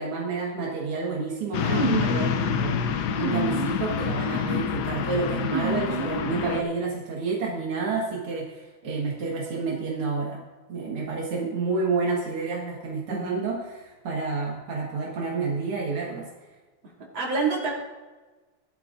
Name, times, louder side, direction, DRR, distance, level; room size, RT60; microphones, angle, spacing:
voice 1, 0.0-2.8 3.2-10.4 10.7-16.3, right 4 dB, 85° right, -3 dB, 2.6 m, -29 dB
sound 1, 1.5-6.6, left 7 dB, 65° left, 1.0 m, -27 dB
sound 2, 1.7-2.3 3.1-3.8 4.2-4.6 5.4-6.6, right 2 dB, 15° right, 1.3 m, -30 dB
voice 2, 13.1-13.4 17.1-17.7, right 4 dB, 60° right, -3 dB, 3.4 m, -27 dB
18.0 x 12.0 x 2.6 m, 1.3 s
omnidirectional pair, 2.4 m